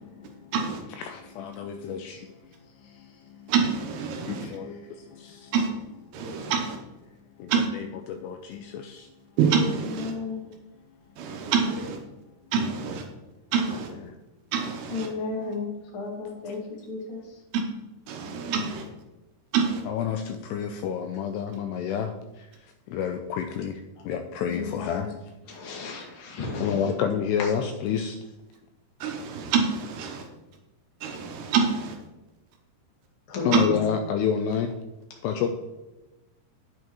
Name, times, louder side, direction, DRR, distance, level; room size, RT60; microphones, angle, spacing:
voice 1, 0.1-0.5 1.0-3.5 4.1-5.5 6.2-6.5 7.1-9.1 10.1-10.6 12.1-12.2 14.1-14.2 16.5-16.6 19.9-25.1 25.7-25.8 26.6-28.2 33.4-34.7 35.2-35.5, left 8 dB, 85° left, 2.4 m, -30 dB
voice 2, 3.5-4.5 5.5-5.7 6.1-6.8 7.5-7.7 9.4-10.1 11.2-12.0 12.5-13.0 13.5-13.9 14.5-15.1 18.1-18.9 19.5-19.8 29.0-30.3 31.0-32.0 33.5-33.6, right 6 dB, 75° right, 2.7 m, -26 dB
voice 3, 9.8-10.4 14.9-17.2 24.5-25.0 25.5-26.8 27.4-27.5 33.3-33.8, left 3 dB, 55° left, 1.5 m, -33 dB
9.4 x 8.1 x 3.0 m
omnidirectional pair, 5.3 m